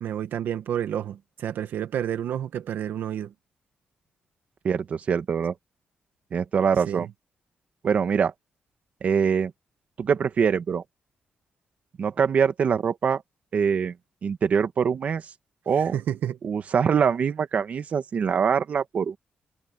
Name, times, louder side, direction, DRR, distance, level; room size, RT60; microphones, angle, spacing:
voice 1, 0.0-3.3 6.9-7.1 15.9-16.4, right 10 dB, 90° right, 1.3 m, -30 dB
voice 2, 4.6-5.5 6.3-7.1 7.8-8.3 9.0-9.5 10.0-10.8 12.0-13.2 13.5-13.9 14.2-15.3 15.6-16.0 16.4-19.2, right 6 dB, 50° right, 1.5 m, -23 dB
wide cardioid pair, 145°, 3 cm